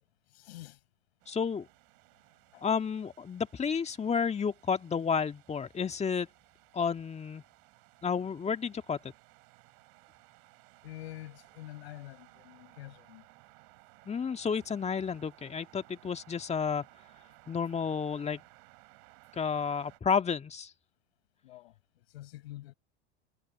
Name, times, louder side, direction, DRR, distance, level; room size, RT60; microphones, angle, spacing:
voice 1, 0.3-0.8 2.5-2.7 10.8-13.2 21.4-22.7, left 16 dB, 75° left, 7.9 m, -47 dB
sound 1, 1.2-20.0, right 40 dB or more, 65° right, 7.5 m, -60 dB
voice 2, 1.3-1.7 2.6-6.3 6.7-7.4 8.0-9.0 14.1-16.8 17.5-18.4 19.3-20.7, left 6 dB, 20° left, 1.8 m, -31 dB
hypercardioid pair, 95°, 32 cm